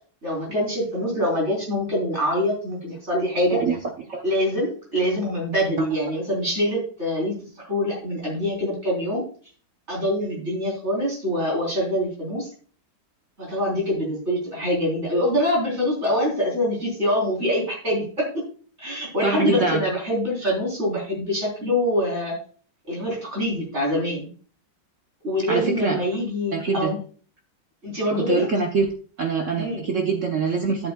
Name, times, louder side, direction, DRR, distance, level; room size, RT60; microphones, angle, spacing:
voice 1, 0.2-3.6 4.2-9.3 9.9-12.5 13.4-18.4 18.8-22.4 22.9-24.3 25.2-27.0 27.8-28.5 29.5-29.8, equal, 30° right, -2 dB, 4.0 m, -25 dB
voice 2, 19.2-19.8 25.5-26.0 26.5-26.9 28.1-28.9 29.2-30.9, right 4 dB, 60° right, 2 dB, 0.8 m, -24 dB
11.5 x 8.0 x 2.3 m, 0.43 s
omnidirectional pair, 2.2 m